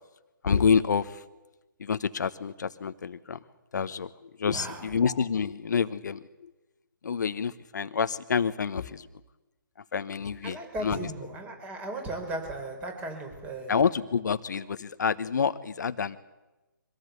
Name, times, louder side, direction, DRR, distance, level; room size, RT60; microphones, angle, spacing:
voice 1, 0.4-1.2 1.8-3.4 3.7-6.5 7.0-9.1 9.9-11.1 13.7-16.2, left 6 dB, 60° left, 12 dB, 1.0 m, -28 dB
voice 2, 4.5-4.9 10.4-13.7, right 1 dB, 10° right, 5 dB, 4.0 m, -36 dB
24.5 x 17.5 x 8.2 m, 1.1 s
figure-of-eight pair, 145°, 11 cm